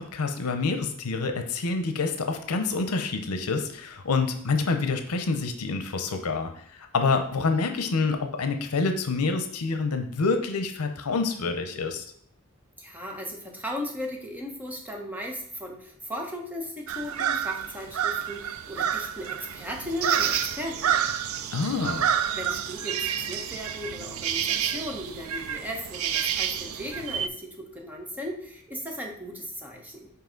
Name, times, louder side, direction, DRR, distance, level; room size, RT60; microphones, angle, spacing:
voice 1, 0.0-12.1 21.5-22.1, left 4 dB, 85° left, 7 dB, 0.7 m, -27 dB
voice 2, 12.8-21.0 22.4-30.1, left 1 dB, 5° right, 1 dB, 0.9 m, -36 dB
sound 1, 16.9-27.3, right 9 dB, 65° right, 0.4 m, -29 dB
5.7 x 4.8 x 3.8 m, 0.64 s
head